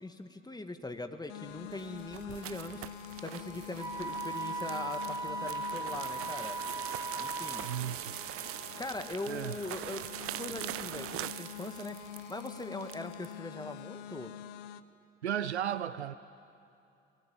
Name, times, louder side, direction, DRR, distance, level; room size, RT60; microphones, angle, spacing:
voice 1, 0.0-2.8 3.2-6.6 7.2-7.7 8.8-10.0 10.4-12.0 12.3-14.3, left 2 dB, 10° left, 7 dB, 2.0 m, -41 dB
sound 1, 1.3-14.8, left 10 dB, 60° left, 0.9 m, -46 dB
sound 2, 1.6-13.3, right 15 dB, 45° right, 0.5 m, -43 dB
Wind instrument woodwind instrument, 3.8-7.9, right 2 dB, 10° right, 0.8 m, -38 dB
voice 2, 7.6-8.2 8.7-8.8 9.3-9.6 15.2-16.1, right 10 dB, 85° right, 15 dB, 0.7 m, -35 dB
27.5 x 20.5 x 8.7 m, 2.6 s
figure-of-eight pair, 50°, 33 cm